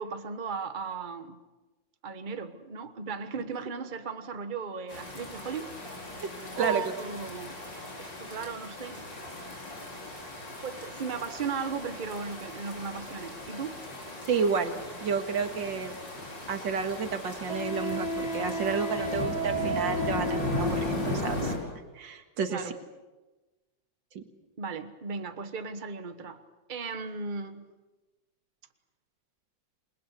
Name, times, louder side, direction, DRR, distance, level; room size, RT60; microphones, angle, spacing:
voice 1, 0.0-1.4 2.0-5.7 6.5-7.6 8.0-9.1 10.6-13.7 22.5-22.7 24.6-26.4 26.7-27.7, right 5 dB, 30° right, 1.3 m, -36 dB
sound 1, 4.9-21.6, left 2 dB, 70° left, 5.5 m, -37 dB
voice 2, 14.3-14.7 15.0-15.9 16.5-21.5 22.0-22.6 24.2-24.3, right 5 dB, 80° right, 2.5 m, -31 dB
Wind instrument woodwind instrument, 16.2-16.3 17.5-21.5, right 1 dB, 15° right, 5.1 m, -33 dB
28.0 x 20.5 x 8.3 m
omnidirectional pair, 2.0 m